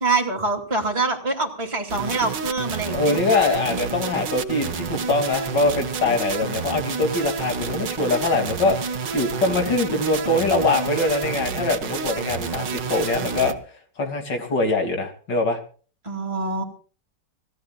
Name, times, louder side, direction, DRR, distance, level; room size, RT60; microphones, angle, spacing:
voice 1, 0.0-3.2 3.7-3.8 16.0-16.6, right 3 dB, 15° right, -1 dB, 2.9 m, -25 dB
sound 1, 1.9-13.5, right 5 dB, 90° right, 2.0 m, -29 dB
voice 2, 2.8-13.6 14.0-15.6, left 2 dB, 80° left, 5 dB, 3.7 m, -23 dB
26.0 x 17.5 x 2.5 m, 0.40 s
omnidirectional pair, 1.9 m